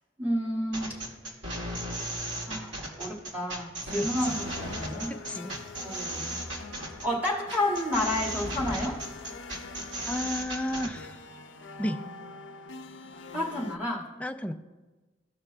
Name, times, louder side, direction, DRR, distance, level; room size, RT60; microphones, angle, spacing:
voice 1, 0.2-1.0 2.5-5.1 5.8-6.4 7.0-9.0 13.3-14.1, left 1 dB, 10° right, -5 dB, 1.8 m, -30 dB
sound 1, 0.7-10.9, right 1 dB, 80° right, 2.0 m, -36 dB
voice 2, 3.9-4.4 5.3-5.6 10.1-11.2 11.8-12.0 14.2-14.5, left 1 dB, 5° left, 5 dB, 0.4 m, -32 dB
sound 2, 4.2-13.8, left 4 dB, 70° left, 0.5 m, -45 dB
15.5 x 5.9 x 2.2 m, 1.2 s
head